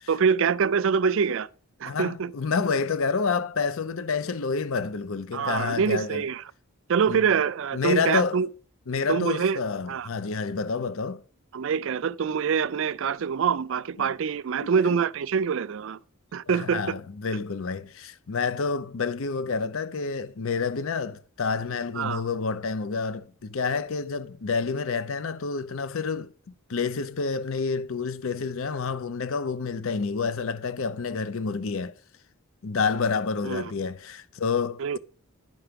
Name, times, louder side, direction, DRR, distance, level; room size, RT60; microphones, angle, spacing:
voice 1, 0.1-1.5 1.8-2.3 5.3-6.4 6.9-8.5 9.1-9.6 9.9-10.1 11.5-16.0 16.3-16.8 22.0-22.2 33.4-33.7 34.8-35.0, right 6 dB, 55° right, 0.4 m, -25 dB
voice 2, 1.9-6.3 7.1-7.3 7.7-8.4 8.9-11.2 14.0-14.1 14.6-14.7 16.5-26.3 26.7-32.0 32.6-35.0, left 5 dB, 65° left, 0.5 m, -29 dB
10.5 x 5.8 x 5.1 m
head